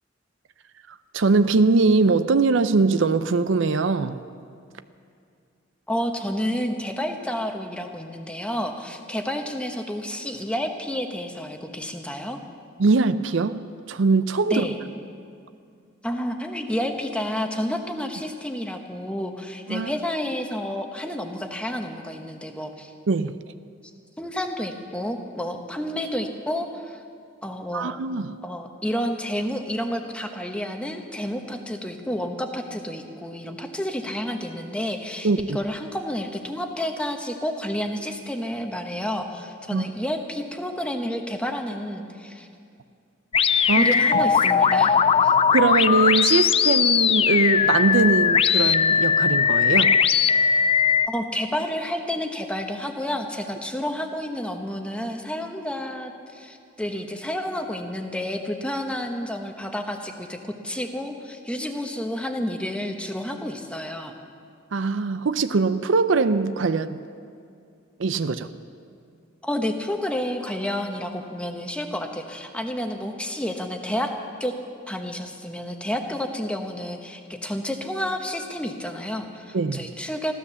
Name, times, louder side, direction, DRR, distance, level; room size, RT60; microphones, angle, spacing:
voice 1, 0.9-4.2 12.8-13.6 13.9-14.6 19.7-19.9 23.1-23.3 27.7-28.3 35.2-35.6 39.7-39.9 43.7-43.9 45.5-49.9 64.7-67.0 68.0-68.5 79.5-79.9, right 4 dB, 70° right, 11 dB, 0.5 m, -21 dB
voice 2, 5.9-12.4 14.5-14.8 16.0-22.9 24.2-27.0 27.4-28.0 28.4-42.5 43.7-45.3 51.1-64.1 69.4-74.1 74.4-74.5 74.9-80.3, equal, 5° left, 4 dB, 1.0 m, -30 dB
sound 1, 43.3-51.1, left 7 dB, 30° left, 0.3 m, -19 dB
15.0 x 12.5 x 7.0 m, 2.3 s
head